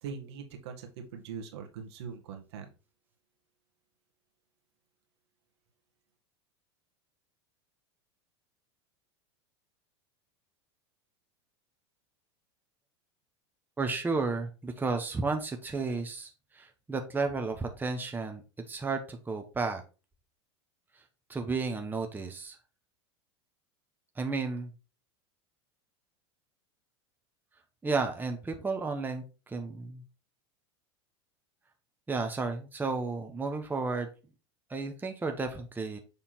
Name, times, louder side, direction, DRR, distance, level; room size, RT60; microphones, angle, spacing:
voice 1, 0.0-2.7, right 6 dB, 70° right, 4 dB, 1.9 m, -42 dB
voice 2, 13.8-18.4 18.7-19.8 21.3-22.6 24.2-24.7 27.8-30.0 32.1-34.1 34.7-36.0, right 4 dB, 15° right, 4 dB, 1.1 m, -32 dB
7.1 x 3.6 x 4.4 m, 0.31 s
hypercardioid pair, 95°, 14 cm